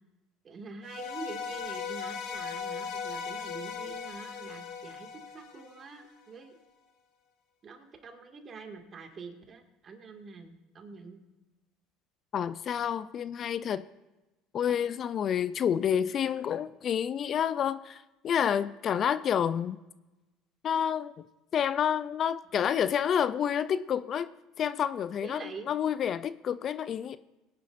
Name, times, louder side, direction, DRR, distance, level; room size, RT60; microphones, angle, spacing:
voice 1, 0.4-6.6 7.6-11.2 25.2-25.7, right 4 dB, 40° right, 4 dB, 2.1 m, -45 dB
sound 1, 0.8-6.1, left 6 dB, 65° left, 1.5 m, -38 dB
voice 2, 12.3-13.8 14.5-19.8 20.6-21.1 21.5-24.3 24.6-27.2, left 8 dB, 45° left, 15 dB, 0.4 m, -29 dB
21.0 x 11.0 x 2.6 m, 1.1 s
supercardioid pair, 85°, 0 cm